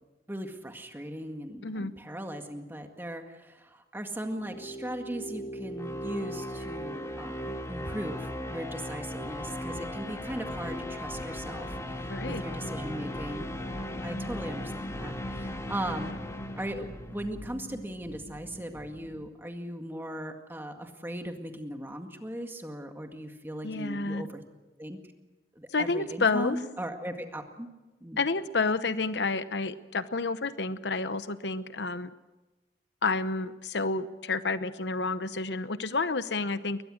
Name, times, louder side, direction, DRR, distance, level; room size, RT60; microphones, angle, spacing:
voice 1, 0.3-16.2 16.6-24.4 24.8-25.0 25.6-27.7 28.0-28.2, right 1 dB, 15° right, 5 dB, 1.9 m, -38 dB
sound 1, 4.2-17.3, equal, 15° left, 1.8 m, -38 dB
sound 2, 9.2-19.3, equal, 40° left, 1.2 m, -42 dB
voice 2, 12.1-12.4 23.6-24.3 25.7-26.6 28.2-32.1 33.0-36.8, left 3 dB, 80° left, 13 dB, 0.9 m, -30 dB
22.5 x 20.5 x 6.4 m, 1.1 s
head